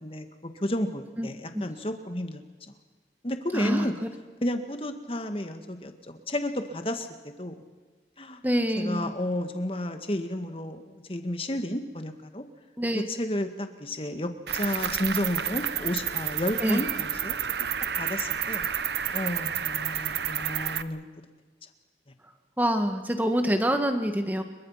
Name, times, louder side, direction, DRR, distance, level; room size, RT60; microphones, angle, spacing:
voice 1, 0.0-2.7 3.2-4.0 4.4-7.5 8.2-8.4 8.8-12.4 12.9-17.4 18.0-18.7 19.1-21.1, left 1 dB, 30° left, 7 dB, 1.8 m, -32 dB
voice 2, 3.5-3.9 8.4-9.1 12.8-13.1 16.6-16.8 22.6-24.4, equal, 10° right, 6 dB, 1.8 m, -26 dB
Cricket, 14.5-20.8, right 9 dB, 75° right, 1.0 m, -30 dB
28.5 x 23.5 x 5.9 m, 1.4 s
head